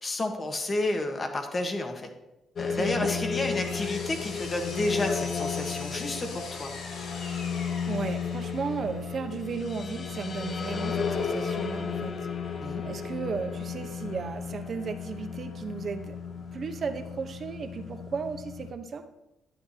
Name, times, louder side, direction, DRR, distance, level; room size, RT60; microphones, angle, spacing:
voice 1, 0.0-2.1 2.6-6.7 12.6-12.8, left 2 dB, 35° left, 4 dB, 1.4 m, -31 dB
sound 1, 2.6-18.7, left 6 dB, 55° left, 0.7 m, -34 dB
voice 2, 2.7-3.2 7.9-12.1 12.4-12.6 12.8-16.2 16.5-19.0, right 5 dB, 50° right, 7 dB, 1.0 m, -35 dB
Power tool, 2.8-8.9, left 3 dB, 80° left, 1.9 m, -43 dB
11.0 x 9.3 x 2.9 m, 0.92 s
cardioid pair, 90°, 0 cm